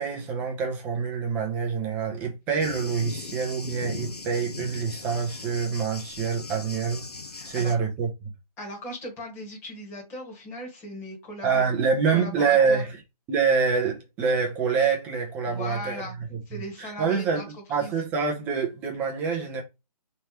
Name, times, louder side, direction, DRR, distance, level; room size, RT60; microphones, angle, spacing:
voice 1, 0.0-7.1 7.4-8.3 11.4-13.0 13.3-16.0 16.3-17.4 17.7-19.6, right 5 dB, 10° right, 0.7 m, -26 dB
Thunder, 2.6-7.8, left 3 dB, 75° left, 0.8 m, -39 dB
voice 2, 7.3-7.8 8.6-11.6 12.1-12.8 15.4-16.1 16.5-17.4 17.8-17.9, left 1 dB, 10° left, 1.5 m, -38 dB
4.2 x 3.3 x 3.0 m
figure-of-eight pair, 140°, 20 cm